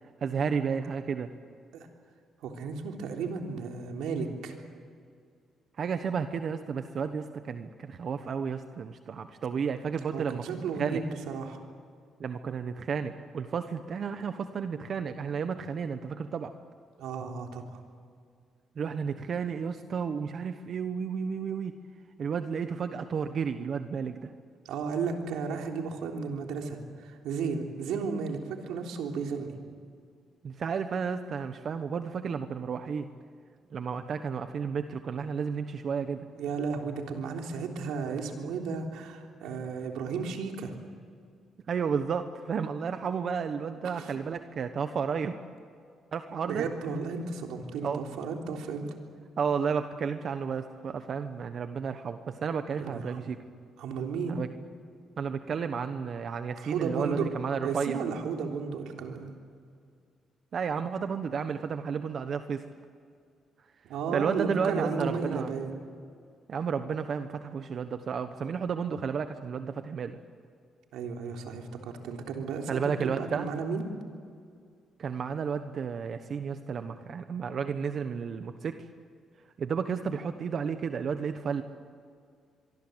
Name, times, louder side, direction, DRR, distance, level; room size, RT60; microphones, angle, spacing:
voice 1, 0.2-1.3 5.8-11.0 12.2-16.5 18.8-21.7 22.2-24.3 30.4-33.1 33.7-36.3 41.7-45.4 46.1-46.6 47.8-48.0 49.4-53.4 54.3-54.5 55.2-58.0 60.5-62.6 64.1-65.5 66.5-70.2 72.7-73.5 75.0-78.7 79.6-81.6, right 6 dB, 55° right, 8 dB, 1.2 m, -32 dB
voice 2, 2.4-4.6 10.1-11.6 17.0-17.8 24.6-29.5 36.3-40.7 43.7-44.1 46.4-48.9 52.8-53.4 53.8-54.4 56.6-57.3 57.6-59.3 63.8-65.7 70.9-73.8, right 5 dB, 85° right, 2 dB, 3.5 m, -34 dB
24.5 x 24.0 x 8.1 m, 2.2 s
cardioid pair, 90°, 0 cm